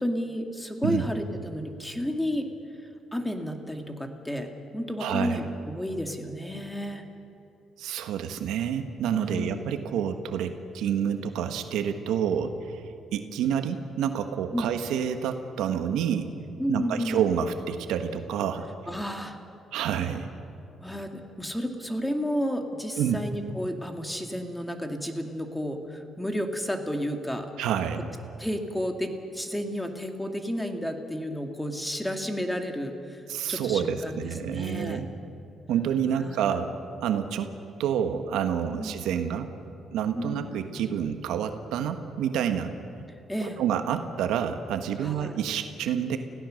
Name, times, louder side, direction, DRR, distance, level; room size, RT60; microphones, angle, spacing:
voice 1, 0.0-2.5 3.1-7.0 9.1-9.7 14.5-14.7 16.6-17.2 18.9-19.4 20.8-27.5 28.4-35.0 36.1-36.4 38.8-39.0 40.1-40.5 43.3-43.6 45.0-45.3, equal, 5° left, 4 dB, 2.2 m, -32 dB
voice 2, 5.0-5.4 7.8-12.8 13.1-16.3 16.7-18.7 19.7-20.3 23.0-23.2 27.6-28.1 33.3-35.1 35.7-37.5 37.8-39.5 39.9-42.7 43.4-46.2, right 8 dB, 90° right, 7 dB, 1.3 m, -28 dB
29.0 x 16.5 x 6.5 m, 2.6 s
cardioid pair, 90°, 0 cm